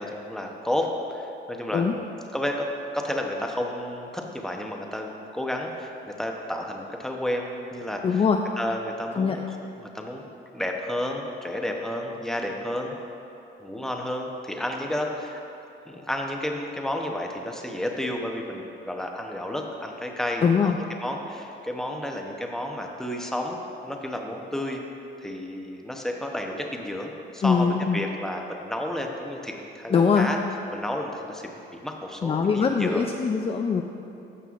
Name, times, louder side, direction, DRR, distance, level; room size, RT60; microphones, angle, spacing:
voice 1, 0.0-2.0 2.3-2.7 2.9-8.2 8.6-9.6 9.9-10.2 10.5-13.0 13.6-15.4 15.9-20.7 21.0-23.6 23.8-24.8 25.2-30.4 30.7-33.1, left 1 dB, ahead, 1 dB, 0.8 m, -31 dB
voice 2, 8.0-8.4 9.1-9.4 20.4-20.8 27.4-28.0 29.9-30.3 32.2-33.8, left 6 dB, 30° left, 3 dB, 0.4 m, -22 dB
14.0 x 5.6 x 2.5 m, 2.8 s
cardioid pair, 90°, 20 cm